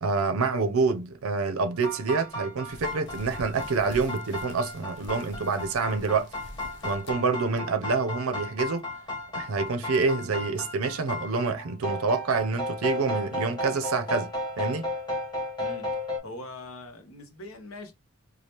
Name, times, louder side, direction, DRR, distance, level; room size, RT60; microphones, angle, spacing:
voice 1, 0.0-6.3 6.8-8.9 9.3-14.3 14.6-14.9, right 4 dB, 85° right, 0.5 m, -27 dB
sound 1, 1.8-16.2, left 1 dB, 20° left, 0.9 m, -34 dB
sound 2, 2.7-8.4 8.8-9.0 9.6-9.7 10.1-10.2, left 1 dB, 55° left, 0.5 m, -46 dB
voice 2, 15.6-17.9, left 2 dB, 85° left, 0.8 m, -42 dB
3.2 x 2.3 x 2.9 m
head